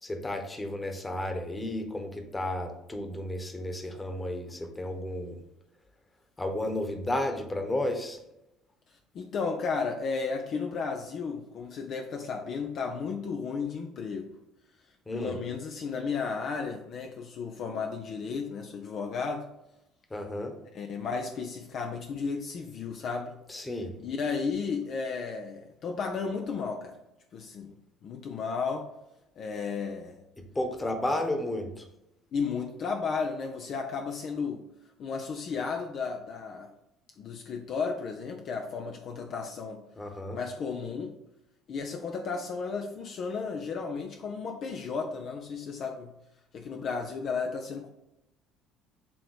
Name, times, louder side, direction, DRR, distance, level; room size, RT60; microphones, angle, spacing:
voice 1, 0.0-5.4 6.4-8.2 15.1-15.4 20.1-20.5 23.5-23.9 30.4-31.9 39.9-40.4, left 1 dB, 20° left, 5 dB, 1.2 m, -33 dB
voice 2, 9.1-14.3 15.1-19.5 20.7-23.4 24.0-27.0 27.3-27.7 28.0-28.9 29.4-30.2 32.3-34.6 35.0-36.7 37.2-39.8 40.3-41.1 41.7-46.1 46.5-47.9, left 5 dB, 50° left, 3 dB, 0.6 m, -33 dB
7.0 x 3.1 x 4.9 m, 0.88 s
hypercardioid pair, 60°, 0 cm